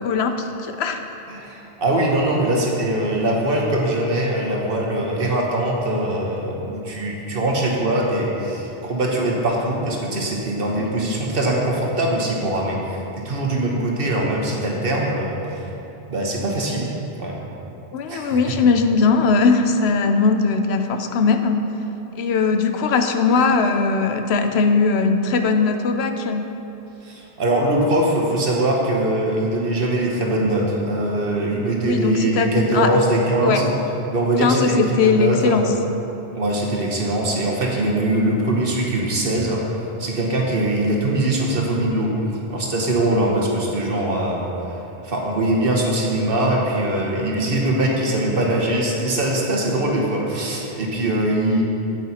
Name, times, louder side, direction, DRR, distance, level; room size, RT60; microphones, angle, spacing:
voice 1, 0.0-1.0 10.8-10.9 17.9-21.6 22.2-26.5 31.8-32.9 33.4-33.6 34.4-35.7, left 4 dB, 85° left, 7 dB, 0.9 m, -19 dB
voice 2, 1.3-15.7 16.1-16.9 17.2-17.4 18.1-18.4 27.0-33.7 34.1-35.6 36.3-44.5 45.0-51.6, right 1 dB, 65° right, -1 dB, 1.4 m, -22 dB
9.0 x 8.1 x 4.2 m, 2.9 s
omnidirectional pair, 1.0 m